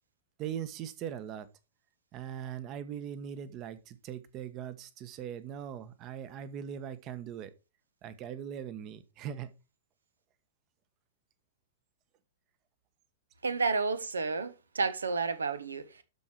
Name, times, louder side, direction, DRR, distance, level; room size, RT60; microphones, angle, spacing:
voice 1, 0.4-1.5 2.1-7.5 8.0-9.5, right 9 dB, 35° right, 1.2 m, -40 dB
voice 2, 13.4-16.0, right 4 dB, 75° right, 1.3 m, -31 dB
12.0 x 5.0 x 4.5 m
figure-of-eight pair, 100°, 0 cm